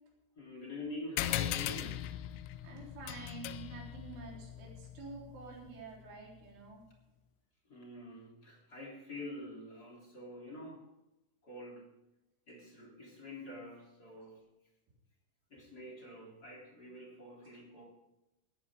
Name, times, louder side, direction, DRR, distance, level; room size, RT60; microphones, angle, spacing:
voice 1, 0.4-2.1 7.7-10.9 11.4-11.9 12.5-14.4 15.5-17.8, left 1 dB, 25° left, -1 dB, 2.9 m, -46 dB
sound 1, 1.2-6.1, left 13 dB, 90° left, 3.3 m, -39 dB
voice 2, 2.6-6.8 14.2-14.3 17.4-17.5, right 4 dB, 70° right, -2 dB, 6.2 m, -49 dB
18.5 x 14.5 x 3.7 m, 0.94 s
omnidirectional pair, 5.8 m